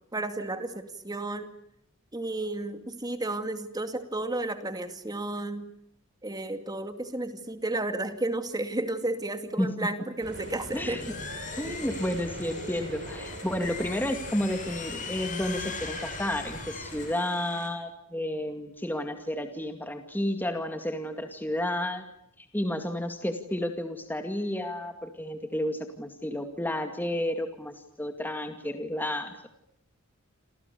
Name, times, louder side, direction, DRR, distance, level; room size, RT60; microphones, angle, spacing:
voice 1, 0.1-1.5 2.1-5.6 6.2-11.0, right 2 dB, 20° right, 8 dB, 2.4 m, -32 dB
sound 1, 10.2-17.1, right 1 dB, 55° right, 4.5 m, -42 dB
sound 2, 10.3-17.7, left 5 dB, 40° left, 6.8 m, -41 dB
voice 2, 11.6-22.0 22.4-29.5, left 1 dB, 10° left, 5 dB, 2.2 m, -31 dB
28.5 x 28.0 x 6.9 m, 0.76 s
head